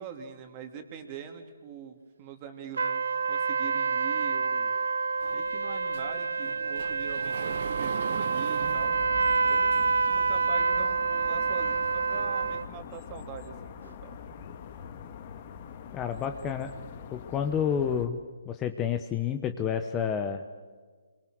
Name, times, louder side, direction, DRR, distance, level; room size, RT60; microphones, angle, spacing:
voice 1, 0.0-4.7 5.3-9.0 9.4-9.8 10.2-14.2, right 7 dB, 25° right, 5 dB, 2.8 m, -43 dB
sound 1, 2.8-12.7, right 4 dB, 75° right, 0.8 m, -27 dB
Sliding door, 5.2-10.2, right 9 dB, 40° right, 0.7 m, -41 dB
sound 2, 8.6-18.1, left 7 dB, 35° left, 1.6 m, -44 dB
voice 2, 15.9-16.7 17.1-18.2 18.4-20.4, left 8 dB, 15° left, 7 dB, 1.0 m, -29 dB
26.5 x 24.0 x 6.4 m, 1.5 s
hypercardioid pair, 160°, 0 cm